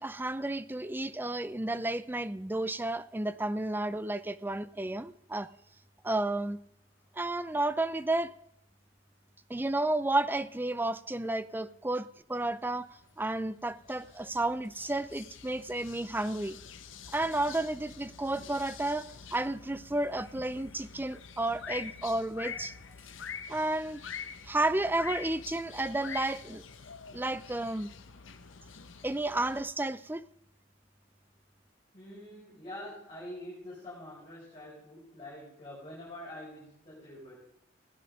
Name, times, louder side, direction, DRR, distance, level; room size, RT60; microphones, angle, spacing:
voice 1, 0.0-5.5 6.0-6.6 7.2-8.3 9.5-12.9 13.2-16.6 17.1-22.7 23.5-24.0 24.4-26.6 27.1-27.9 29.0-30.2, right 2 dB, 10° right, 13 dB, 0.5 m, -32 dB
sound 1, 13.0-29.6, left 7 dB, 85° left, 1.1 m, -46 dB
voice 2, 31.9-37.4, left 1 dB, 30° left, -7 dB, 5.1 m, -45 dB
17.0 x 9.9 x 5.2 m, 0.74 s
head